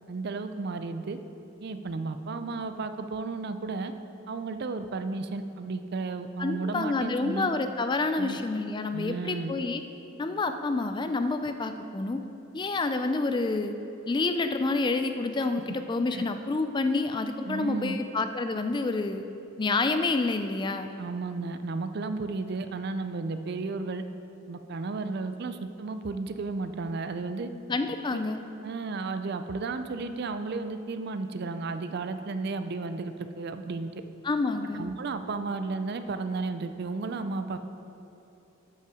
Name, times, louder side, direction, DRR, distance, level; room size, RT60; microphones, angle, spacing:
voice 1, 0.1-1.2 1.6-3.9 4.3-7.5 8.2-8.4 8.9-9.5 15.5-15.6 16.1-16.2 17.5-18.0 21.0-24.0 24.5-27.5 28.6-33.9 34.7-37.6, right 3 dB, 50° right, 9 dB, 0.4 m, -33 dB
voice 2, 6.4-9.8 10.2-12.2 12.5-13.7 14.1-19.3 19.6-20.9 27.7-28.4 34.2-34.9, left 3 dB, 20° left, 8 dB, 0.3 m, -28 dB
12.5 x 5.6 x 4.9 m, 2.9 s
head